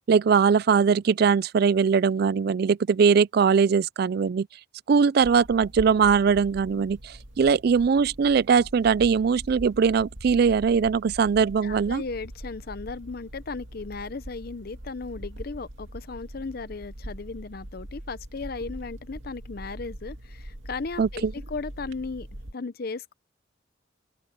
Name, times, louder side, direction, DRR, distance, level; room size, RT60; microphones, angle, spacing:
voice 1, 0.1-4.5 4.9-12.0 21.0-21.3, right 6 dB, 55° right, 0.3 m, -21 dB
sound 1, 5.2-22.5, right 1 dB, 80° right, 2.3 m, -42 dB
voice 2, 11.6-22.3 22.5-23.1, left 4 dB, 50° left, 0.7 m, -36 dB
open air
head